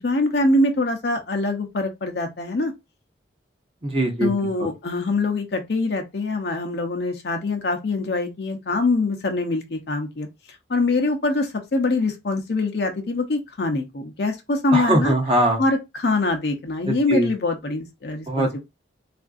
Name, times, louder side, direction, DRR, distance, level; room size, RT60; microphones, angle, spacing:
voice 1, 0.0-2.7 4.2-10.3 10.7-15.1 15.6-18.6, left 2 dB, 60° left, 0.6 m, -24 dB
voice 2, 3.8-4.3 4.6-4.7 14.7-15.6 16.8-17.3 18.3-18.6, right 1 dB, 30° right, 0.7 m, -21 dB
3.5 x 2.5 x 2.3 m
head